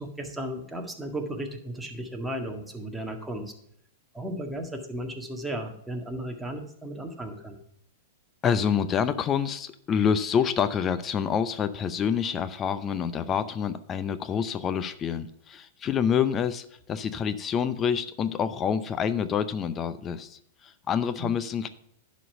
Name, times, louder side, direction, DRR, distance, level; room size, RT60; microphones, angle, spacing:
voice 1, 0.0-3.5 4.1-7.6 21.2-21.3, right 1 dB, 5° right, 2 dB, 1.8 m, -35 dB
voice 2, 8.4-21.7, left 7 dB, 25° left, 12 dB, 0.6 m, -27 dB
11.0 x 5.2 x 5.6 m, 0.72 s
hypercardioid pair, 105°, 0 cm